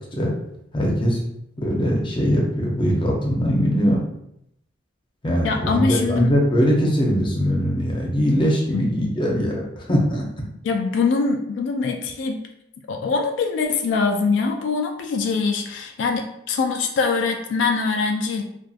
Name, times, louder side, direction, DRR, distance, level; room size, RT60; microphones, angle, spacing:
voice 1, 0.7-1.2 1.6-4.0 5.2-10.2, equal, 25° left, -2 dB, 0.5 m, -21 dB
voice 2, 5.4-6.3 8.7-8.9 10.6-12.5 12.9-18.4, left 4 dB, 85° left, 4 dB, 0.3 m, -23 dB
2.6 x 2.2 x 2.4 m, 0.78 s
head